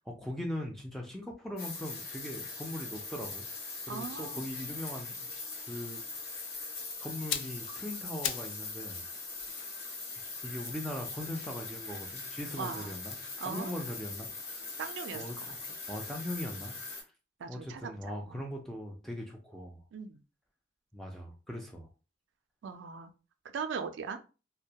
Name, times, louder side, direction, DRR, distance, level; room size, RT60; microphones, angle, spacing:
voice 1, 0.1-3.5 3.9-5.3 5.6-6.0 6.3-6.6 7.0-9.0 10.4-14.3 15.1-15.6 15.9-16.7 17.5-19.8 20.9-21.9, left 1 dB, ahead, 0 dB, 0.4 m, -40 dB
sound 1, 1.6-17.0, left 3 dB, 55° left, 0.7 m, -41 dB
voice 2, 3.9-4.4 12.6-13.0 13.4-13.7 14.8-15.2 16.1-16.2 17.4-18.5 19.9-20.2 22.6-23.1 23.5-24.2, right 6 dB, 85° right, 8 dB, 0.3 m, -39 dB
sound 2, 7.1-8.6 8.9-12.2 13.0-15.0 15.3-15.5, left 9 dB, 90° left, 0.3 m, -42 dB
2.2 x 2.1 x 2.7 m, 0.32 s
head